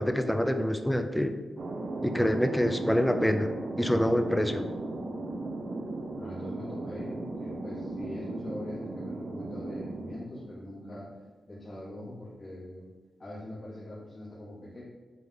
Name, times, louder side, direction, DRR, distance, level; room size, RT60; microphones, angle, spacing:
voice 1, 0.0-1.4 2.0-3.5 3.8-4.7, equal, 5° left, 6 dB, 0.4 m, -26 dB
Thunder, 1.6-10.9, right 2 dB, 45° right, 0.6 m, -37 dB
voice 2, 6.2-11.1 11.5-12.9 13.2-14.8, left 1 dB, 25° left, -11 dB, 1.9 m, -42 dB
8.4 x 3.6 x 3.9 m, 1.3 s
wide cardioid pair, 180°, 0 cm